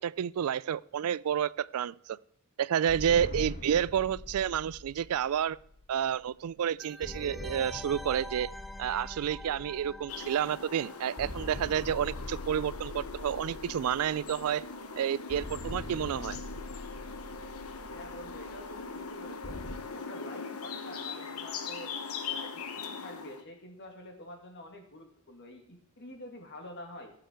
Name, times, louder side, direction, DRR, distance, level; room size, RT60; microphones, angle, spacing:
voice 1, 0.0-2.2 2.6-5.6 5.9-8.5 8.8-14.6 15.0-16.4, right 9 dB, 75° right, 22 dB, 0.3 m, -30 dB
sound 1, 2.9-6.5 7.0-10.8 11.2-14.8 15.3-19.8, left 2 dB, 40° left, 1.2 m, -43 dB
sound 2, 6.8-12.3 12.5-12.6, equal, ahead, 0.4 m, -47 dB
sound 3, 10.1-23.4, left 5 dB, 80° left, 1.2 m, -41 dB
voice 2, 17.8-19.6 19.9-21.9 22.2-27.1, left 1 dB, 55° left, 4 dB, 2.3 m, -47 dB
14.0 x 6.9 x 4.5 m, 0.66 s
head